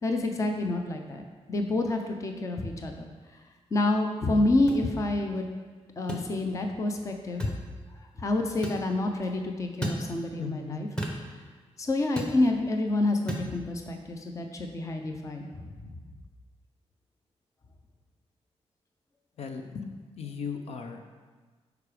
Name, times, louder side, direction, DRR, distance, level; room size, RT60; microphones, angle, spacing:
voice 1, 0.0-1.2 1.5-3.1 3.7-5.4 6.0-7.5 8.0-10.9 11.8-16.0, left 2 dB, 30° left, 4 dB, 0.7 m, -28 dB
sound 1, 4.7-4.8 6.1-6.3 7.4-7.6 8.6-8.8 9.8-10.0 11.0-11.2 12.2-12.4 13.3-13.5, right 1 dB, 10° left, 1.0 m, -33 dB
voice 2, 10.4-10.8 19.4-19.9 20.2-21.2, left 6 dB, 65° left, 5 dB, 0.8 m, -37 dB
11.5 x 4.8 x 5.0 m, 1.4 s
wide cardioid pair, 180°, 11 cm